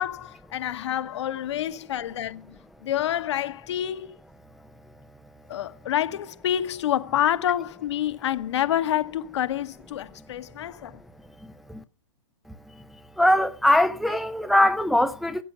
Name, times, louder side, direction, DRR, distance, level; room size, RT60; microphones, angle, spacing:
voice 1, 0.0-4.2 5.5-11.0, left 11 dB, 60° left, 1.2 m, -28 dB
voice 2, 13.2-15.4, left 1 dB, ahead, 0.6 m, -21 dB
15.0 x 8.1 x 5.8 m
hypercardioid pair, 125°, 17 cm